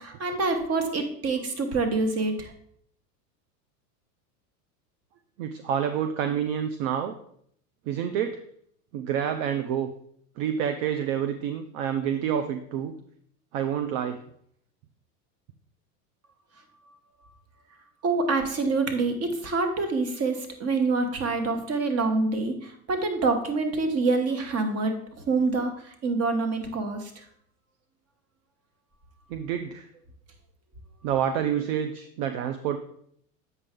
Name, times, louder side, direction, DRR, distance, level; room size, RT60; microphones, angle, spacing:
voice 1, 0.0-2.5 18.0-25.0 25.3-27.2, right 3 dB, 30° right, 6 dB, 1.3 m, -26 dB
voice 2, 5.4-7.1 7.9-8.4 8.9-9.9 10.4-12.9 13.5-14.2 29.3-29.9 31.0-32.8, right 9 dB, 50° right, 8 dB, 0.7 m, -28 dB
8.0 x 5.2 x 3.7 m, 0.67 s
hypercardioid pair, 100°, 49 cm